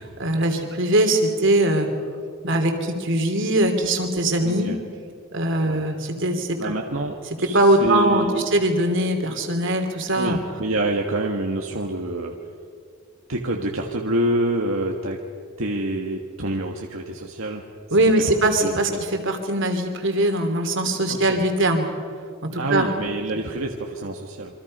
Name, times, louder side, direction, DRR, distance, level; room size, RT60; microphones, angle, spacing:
voice 1, 0.0-1.9 2.4-4.7 5.3-6.7 7.5-10.4 17.9-21.9 22.4-22.9, right 1 dB, 65° right, 5 dB, 3.1 m, -21 dB
voice 2, 4.4-4.8 5.6-5.8 6.6-8.5 10.1-12.4 13.3-15.2 15.6-17.6 18.3-18.4 18.6-19.0 21.1-21.4 22.5-24.5, right 1 dB, 85° right, 1 dB, 1.6 m, -27 dB
27.5 x 24.5 x 5.5 m, 2.1 s
head